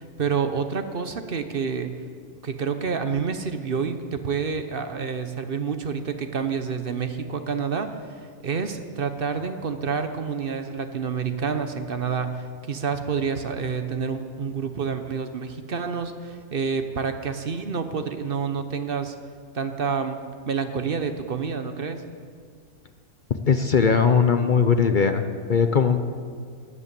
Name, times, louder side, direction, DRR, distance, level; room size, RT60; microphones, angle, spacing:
voice 1, 0.0-1.9 2.4-19.1 19.5-20.2 20.5-22.0, right 6 dB, 45° right, 8 dB, 0.9 m, -28 dB
voice 2, 23.5-25.2 25.5-26.0, left 6 dB, 50° left, 8 dB, 0.6 m, -19 dB
12.5 x 11.0 x 8.4 m, 2.1 s
omnidirectional pair, 1.6 m